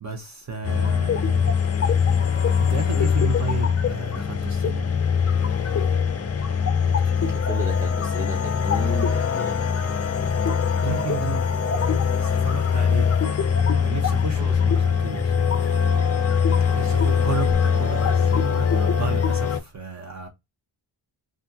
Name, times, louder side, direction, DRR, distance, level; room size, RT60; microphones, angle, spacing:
voice 1, 0.0-1.5 2.7-5.0 6.4-6.5 6.8-7.1 10.8-13.1 13.8-15.6 16.7-20.3, right 5 dB, 35° right, 0.8 m, -33 dB
sound 1, 0.6-19.6, left 7 dB, 35° left, 0.4 m, -22 dB
voice 2, 7.2-9.7 14.3-14.6, right 1 dB, 5° right, 0.8 m, -34 dB
3.3 x 2.5 x 2.7 m
wide cardioid pair, 130°, 48 cm